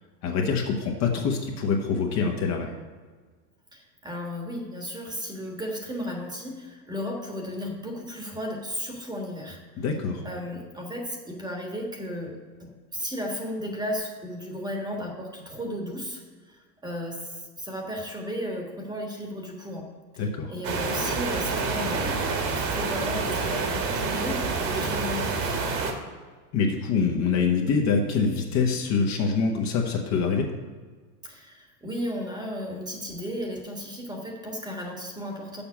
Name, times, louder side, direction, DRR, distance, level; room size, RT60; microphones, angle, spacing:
voice 1, 0.2-2.7 9.8-10.2 20.2-20.5 26.5-30.5, left 5 dB, 35° left, 2 dB, 1.1 m, -25 dB
voice 2, 3.7-9.8 10.2-16.2 16.5-20.2 20.5-22.2 22.5-25.5 31.2-35.6, equal, 10° right, 1 dB, 1.3 m, -34 dB
sound 1, 20.6-25.9, right 4 dB, 40° right, 1.6 m, -28 dB
7.0 x 5.7 x 6.9 m, 1.5 s
supercardioid pair, 125°, 46 cm